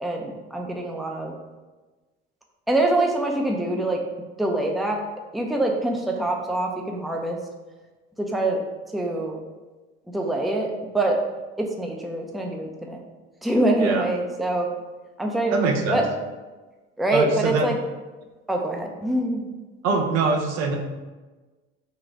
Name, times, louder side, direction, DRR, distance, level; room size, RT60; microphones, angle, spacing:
voice 1, 0.0-1.3 2.7-4.0 4.4-5.0 5.3-7.4 8.2-8.6 8.9-9.4 10.1-11.2 11.6-13.0 13.4-14.7 15.2-15.5 15.9-16.0 17.0-17.8 18.5-19.5, right 1 dB, ahead, 0 dB, 0.6 m, -24 dB
voice 2, 15.5-16.0 17.1-17.7 19.8-20.8, right 4 dB, 60° right, 3 dB, 0.8 m, -23 dB
4.1 x 2.4 x 4.5 m, 1.2 s
hypercardioid pair, 70°, 30 cm